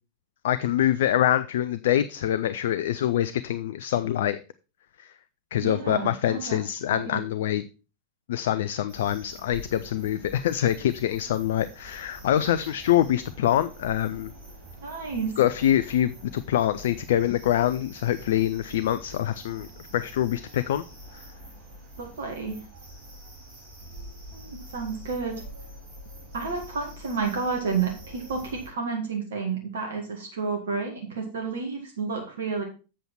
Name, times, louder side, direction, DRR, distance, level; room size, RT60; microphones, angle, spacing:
voice 1, 0.4-4.4 5.0-5.1 5.5-7.6 8.3-14.3 15.4-19.7 19.9-20.8, left 11 dB, 55° left, 14 dB, 0.4 m, -25 dB
voice 2, 5.6-6.6 6.9-7.2 14.8-15.4 22.0-22.6 24.3-25.4 26.3-32.6, right 5 dB, 60° right, 2 dB, 2.0 m, -31 dB
sound 1, 8.9-28.7, right 1 dB, 35° right, 5.7 m, -46 dB
7.8 x 7.3 x 4.4 m, 0.32 s
figure-of-eight pair, 90°, 0 cm